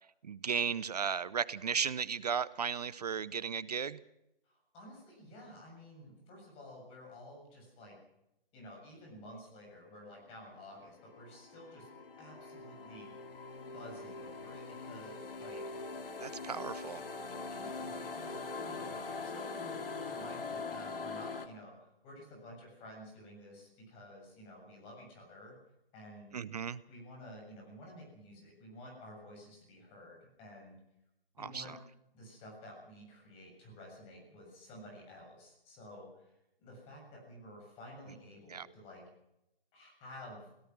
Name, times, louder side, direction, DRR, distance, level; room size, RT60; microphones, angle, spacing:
voice 1, 0.2-4.0 16.2-17.0 26.3-26.8 31.4-31.6 38.5-38.7, right 6 dB, 40° right, 18 dB, 0.6 m, -35 dB
voice 2, 4.5-7.9 8.5-11.9 12.2-13.1 13.7-15.6 17.3-25.6 25.9-26.3 26.9-30.8 31.4-31.8 32.1-36.3 36.6-39.0 39.7-40.5, left 1 dB, 20° left, 0 dB, 7.0 m, -52 dB
sound 1, 10.8-21.5, left 4 dB, 65° left, 2.8 m, -42 dB
24.5 x 17.5 x 6.1 m, 0.86 s
figure-of-eight pair, 145°, 30 cm